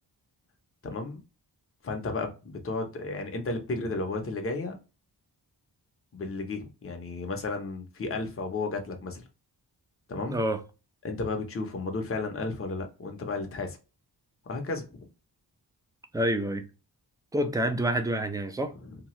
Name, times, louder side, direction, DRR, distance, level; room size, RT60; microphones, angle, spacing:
voice 1, 0.8-1.2 1.8-4.7 6.1-9.2 10.1-10.4 11.0-13.8 14.4-14.8 18.8-19.0, left 3 dB, 30° left, 0.7 m, -33 dB
voice 2, 10.3-10.6 16.1-16.7 17.3-18.7, right 1 dB, 10° right, 0.4 m, -27 dB
2.9 x 2.3 x 3.0 m
wide cardioid pair, 90°, 42 cm